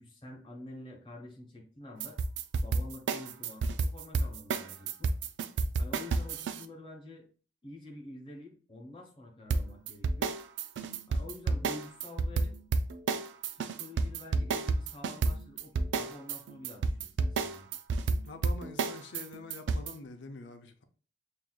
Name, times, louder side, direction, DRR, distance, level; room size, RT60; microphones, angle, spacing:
voice 1, 0.0-2.2 2.6-5.1 5.8-7.3 7.6-10.3 11.1-12.6 13.5-17.7, left 2 dB, 25° left, 1.1 m, -48 dB
sound 1, 2.0-6.6 9.5-19.9, right 4 dB, 85° right, 0.4 m, -30 dB
voice 2, 18.2-20.8, left 2 dB, 85° left, 0.6 m, -45 dB
6.0 x 2.7 x 2.3 m
head